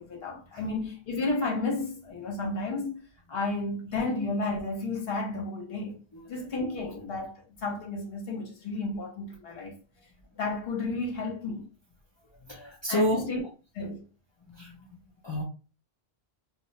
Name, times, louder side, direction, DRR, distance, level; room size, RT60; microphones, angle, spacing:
voice 1, 0.0-3.0 3.3-6.0 6.3-9.8 10.4-11.7 12.9-13.4 13.7-14.0, left 3 dB, 70° left, 1.0 m, -32 dB
voice 2, 6.1-6.8 12.4-13.3 14.5-15.4, left 1 dB, 45° left, 0.3 m, -32 dB
2.4 x 2.0 x 2.8 m
omnidirectional pair, 1.1 m